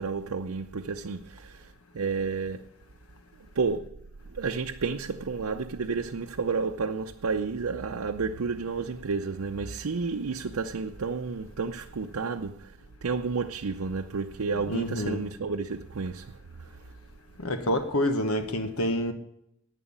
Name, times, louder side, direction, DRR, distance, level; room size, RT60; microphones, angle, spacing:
voice 1, 0.0-2.7 3.5-3.9 4.3-16.8, right 4 dB, 90° right, 0.6 m, -31 dB
voice 2, 14.7-15.2 17.4-19.1, left 1 dB, 80° left, 1.3 m, -27 dB
11.0 x 9.1 x 8.8 m
head